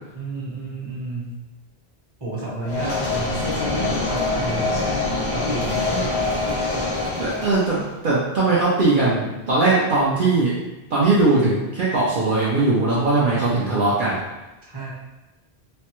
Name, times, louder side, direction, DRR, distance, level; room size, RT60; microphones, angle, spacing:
voice 1, 0.1-1.4 2.2-4.8 5.3-5.9 14.6-14.9, right 2 dB, 25° right, -6 dB, 0.8 m, -31 dB
sound 1, 2.7-7.8, left 2 dB, 30° left, 0.5 m, -24 dB
voice 2, 7.2-10.5 10.9-14.2, right 3 dB, 60° right, -7 dB, 0.7 m, -20 dB
3.2 x 2.2 x 2.9 m, 1.0 s
omnidirectional pair, 1.0 m